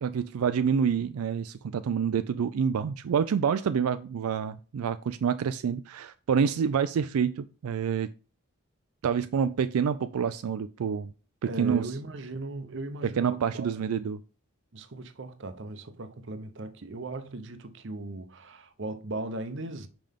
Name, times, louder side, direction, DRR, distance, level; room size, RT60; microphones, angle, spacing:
voice 1, 0.0-8.1 9.0-11.1 11.6-11.9 13.2-14.2, right 7 dB, 85° right, 0.4 m, -27 dB
voice 2, 11.5-13.7 14.7-19.9, right 2 dB, 55° right, 0.7 m, -38 dB
5.6 x 5.0 x 3.5 m
head